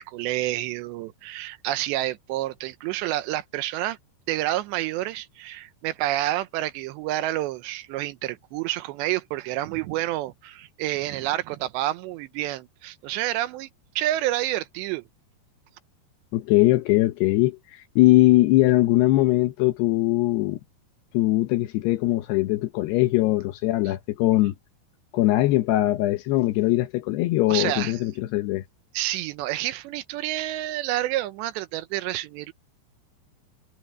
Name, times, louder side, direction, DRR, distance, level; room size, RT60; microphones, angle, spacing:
voice 1, 0.0-4.0 4.3-13.7 14.0-15.0 27.5-28.0 28.9-32.5, right 15 dB, 80° right, 2.9 m, -29 dB
voice 2, 16.3-20.6 21.1-24.5 25.1-28.6, left 17 dB, 75° left, 2.6 m, -21 dB
omnidirectional pair, 5.3 m